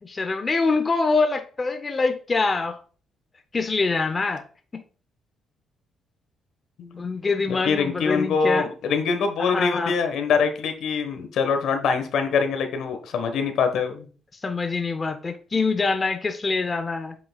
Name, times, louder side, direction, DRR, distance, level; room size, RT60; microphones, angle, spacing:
voice 1, 0.0-2.8 3.5-4.4 4.7-4.8 7.0-8.7 9.4-9.9 14.4-17.2, left 4 dB, 30° left, 0.7 m, -25 dB
voice 2, 7.5-14.1, left 5 dB, 75° left, 1.3 m, -24 dB
8.2 x 5.6 x 2.4 m
cardioid pair, 90°, 0 cm